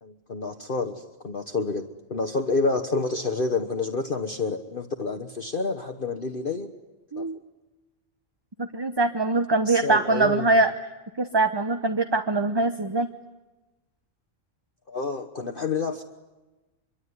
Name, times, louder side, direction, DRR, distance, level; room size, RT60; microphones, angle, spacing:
voice 1, 0.0-6.7 7.2-7.3 9.7-10.6 14.9-16.0, left 3 dB, 40° left, 4 dB, 1.3 m, -28 dB
voice 2, 8.6-10.7 11.2-13.1, right 3 dB, 20° right, 7 dB, 0.9 m, -23 dB
25.0 x 23.5 x 9.7 m, 1.1 s
omnidirectional pair, 1.4 m